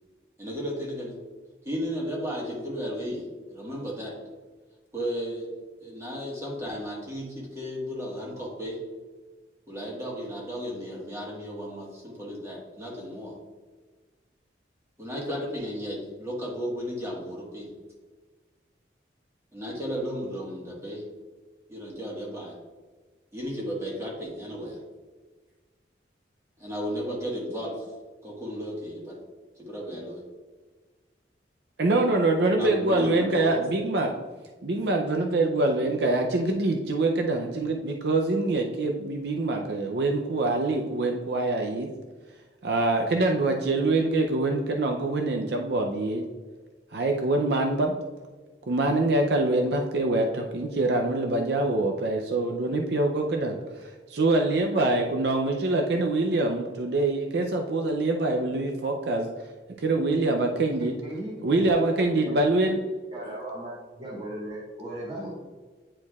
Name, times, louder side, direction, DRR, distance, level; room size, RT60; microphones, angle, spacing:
voice 1, 0.4-1.2 1.6-4.1 4.9-5.5 5.8-8.8 9.7-13.4 15.0-17.7 19.5-21.1 21.7-22.6 23.3-24.8 26.6-27.8 28.2-29.2 29.6-30.2 32.5-33.6, equal, 15° right, -4 dB, 1.5 m, -34 dB
voice 2, 31.8-34.1 34.6-41.9 42.6-46.2 46.9-48.0 48.7-59.3 59.8-61.0 61.4-62.8, right 2 dB, 60° right, 2 dB, 0.5 m, -25 dB
voice 3, 63.1-65.3, right 1 dB, 30° right, -6 dB, 1.8 m, -37 dB
9.7 x 4.4 x 2.4 m, 1.3 s
head